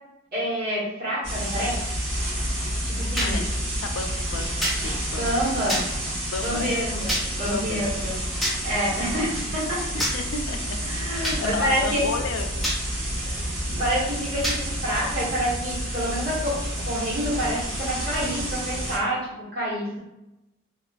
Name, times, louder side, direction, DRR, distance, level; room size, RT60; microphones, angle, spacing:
voice 1, 0.3-1.8 2.8-3.4 5.1-5.8 6.4-8.1 8.6-10.0 10.8-12.0 13.2-13.5 13.8-16.6 16.8-20.0, equal, 50° right, -7 dB, 1.1 m, -27 dB
sound 1, 1.2-19.0, right 1 dB, 85° right, 1.0 m, -29 dB
sound 2, 3.2-3.3 4.6-4.8 5.7-5.9 7.1-7.3 8.4-8.6 10.0-10.2 11.2-11.4 12.6-12.8 14.4-14.6, equal, ahead, 0.4 m, -25 dB
voice 2, 3.9-5.7 6.3-6.8 7.5-7.9 9.9-10.8 11.4-12.9, left 5 dB, 85° left, 6 dB, 0.3 m, -33 dB
2.4 x 2.3 x 2.2 m, 0.93 s
head